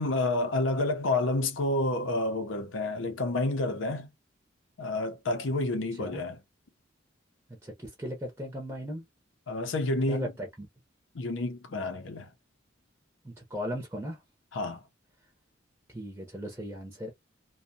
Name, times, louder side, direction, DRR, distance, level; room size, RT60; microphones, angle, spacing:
voice 1, 0.0-4.1 4.8-6.4 9.5-10.3 11.1-12.3 14.5-14.8, left 2 dB, 80° left, 0.6 m, -29 dB
voice 2, 5.9-6.2 7.6-9.0 10.1-10.7 13.2-14.2 15.9-17.1, equal, 15° right, 0.6 m, -37 dB
2.6 x 2.1 x 2.6 m
head